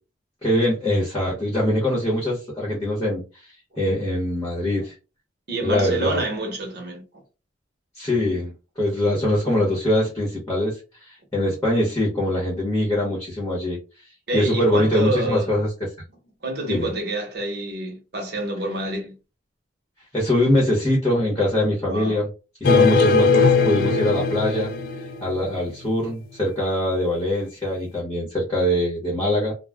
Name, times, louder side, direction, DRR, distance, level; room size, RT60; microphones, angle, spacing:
voice 1, 0.4-5.0 5.6-6.2 7.9-13.8 14.3-15.7 16.7-16.9 20.1-22.3 22.6-24.7 25.2-29.5, left 1 dB, 15° left, 0.8 m, -23 dB
voice 2, 5.5-7.0 14.3-15.5 16.4-19.1 21.8-22.2, right 1 dB, 55° right, 1.0 m, -27 dB
sound 1, 22.6-25.7, left 4 dB, 50° left, 0.3 m, -19 dB
2.3 x 2.1 x 3.4 m
head